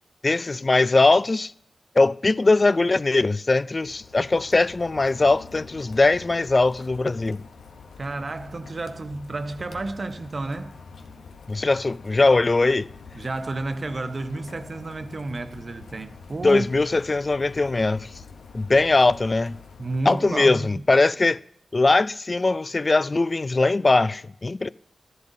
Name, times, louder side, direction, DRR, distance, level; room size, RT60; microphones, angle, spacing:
voice 1, 0.2-1.5 2.0-7.4 11.5-12.9 16.4-18.1 18.5-19.6 20.1-21.4 21.7-24.7, left 3 dB, 40° left, 0.3 m, -20 dB
Rain, 3.6-20.9, left 5 dB, 90° left, 0.7 m, -46 dB
voice 2, 8.0-10.8 13.1-16.7 19.8-20.7, right 2 dB, 55° right, 0.7 m, -31 dB
13.0 x 11.0 x 2.6 m
cardioid pair, 45°, 0 cm